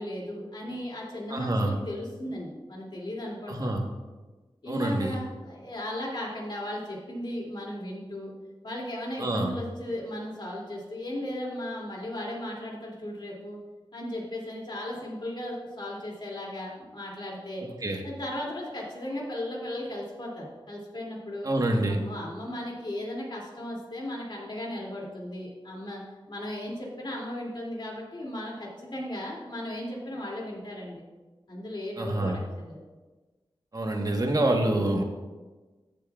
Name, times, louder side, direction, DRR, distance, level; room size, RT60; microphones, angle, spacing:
voice 1, 0.0-3.7 4.6-8.3 8.6-13.6 13.9-17.6 18.0-21.5 21.9-26.0 26.3-31.0 31.5-32.8, left 1 dB, 55° left, -3 dB, 2.6 m, -36 dB
voice 2, 1.3-1.7 3.5-3.8 4.7-5.2 9.2-9.5 17.6-18.0 21.4-22.0 32.0-32.4 33.7-35.0, right 1 dB, 40° right, 2 dB, 1.2 m, -26 dB
14.5 x 7.5 x 2.4 m, 1.2 s
wide cardioid pair, 90°, 10 cm